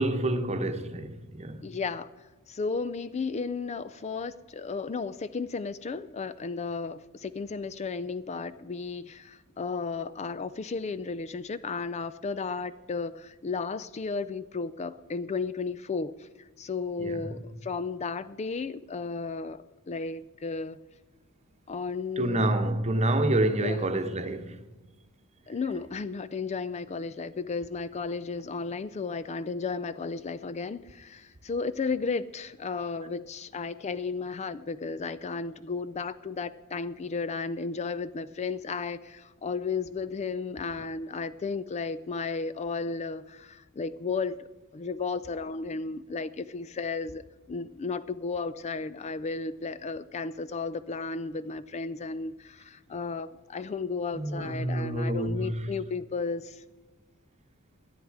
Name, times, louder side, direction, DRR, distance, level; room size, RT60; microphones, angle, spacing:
voice 1, 0.0-1.6 17.0-17.1 22.2-24.6 54.1-55.5, right 1 dB, 30° right, 1.1 m, -27 dB
voice 2, 1.6-2.1 2.5-20.8 21.7-22.5 23.6-23.8 25.5-44.5 44.7-56.6, left 4 dB, 30° left, 0.4 m, -34 dB
18.0 x 11.0 x 4.8 m
head